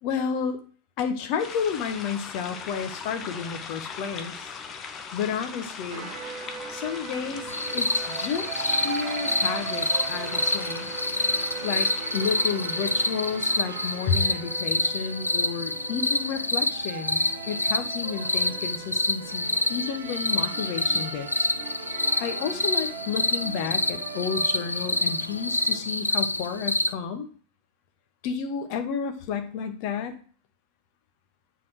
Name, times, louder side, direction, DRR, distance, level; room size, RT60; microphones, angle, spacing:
voice 1, 0.0-0.6 1.0-4.5 5.1-6.1 6.7-7.5 7.7-10.9 11.6-21.5 22.2-27.3 28.2-30.1, left 6 dB, 45° left, 7 dB, 1.2 m, -31 dB
sound 1, 1.4-14.2, left 5 dB, 25° left, 1.0 m, -40 dB
sound 2, 5.9-25.8, right 9 dB, 50° right, 0.8 m, -39 dB
sound 3, 7.5-26.9, left 2 dB, 85° left, 0.4 m, -27 dB
9.0 x 4.1 x 4.6 m, 0.41 s
figure-of-eight pair, 90°, 0 cm